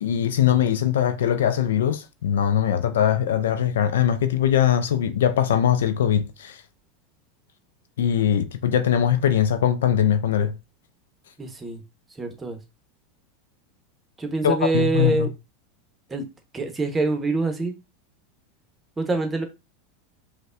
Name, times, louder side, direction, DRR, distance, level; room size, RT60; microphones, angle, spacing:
voice 1, 0.0-6.5 8.0-10.5 14.4-15.3, left 9 dB, 75° left, 0.4 m, -21 dB
voice 2, 11.4-11.8 12.2-12.6 14.2-15.3 16.1-16.2 16.5-17.7 19.0-19.4, right 3 dB, 15° right, 0.9 m, -25 dB
5.1 x 2.2 x 2.4 m
hypercardioid pair, 90°, 0 cm